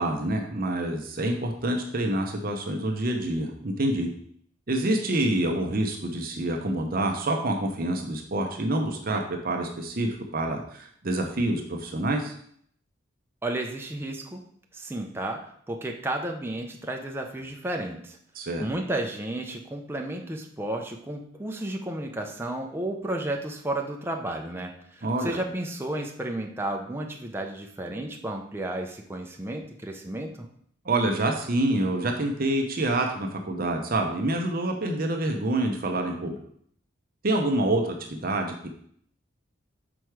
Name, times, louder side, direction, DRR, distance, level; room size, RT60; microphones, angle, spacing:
voice 1, 0.0-4.1 4.7-12.3 18.3-18.7 25.0-25.4 30.8-36.4 37.2-38.7, right 1 dB, 45° right, 3 dB, 0.8 m, -27 dB
voice 2, 13.4-14.5 14.7-18.2 18.6-30.5, right 1 dB, 10° right, 2 dB, 0.6 m, -32 dB
6.2 x 4.6 x 4.7 m, 0.64 s
head